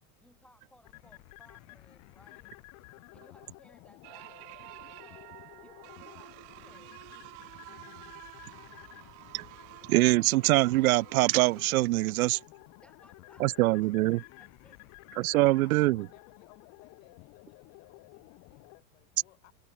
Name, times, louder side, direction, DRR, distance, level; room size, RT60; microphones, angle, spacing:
voice 1, 0.2-2.6 3.1-6.9 7.5-7.6 12.8-14.8, left 1 dB, 5° left, 7.2 m, -62 dB
sound 1, 0.8-18.8, left 24 dB, 45° left, 1.9 m, -53 dB
sound 2, 4.0-11.7, right 40 dB or more, 55° right, 2.4 m, -50 dB
voice 2, 9.9-12.4 13.4-14.2 15.2-16.0, right 19 dB, 85° right, 0.7 m, -24 dB
voice 3, 15.6-19.5, left 20 dB, 65° left, 6.7 m, -62 dB
supercardioid pair, 145°, 41 cm